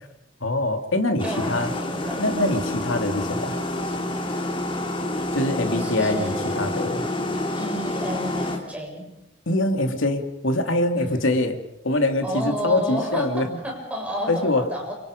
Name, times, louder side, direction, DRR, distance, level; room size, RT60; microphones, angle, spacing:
voice 1, 0.4-1.7 2.2-3.5 5.3-7.1 9.5-11.6 11.8-13.6 14.3-14.6, left 2 dB, 85° left, 5 dB, 2.8 m, -24 dB
sound 1, 1.2-8.6, left 1 dB, 25° left, 3.3 m, -28 dB
voice 2, 1.2-2.3 5.5-7.2 7.5-9.1 10.9-11.3 12.2-14.9, equal, 5° right, 0 dB, 7.6 m, -31 dB
29.5 x 26.5 x 5.3 m, 0.87 s
head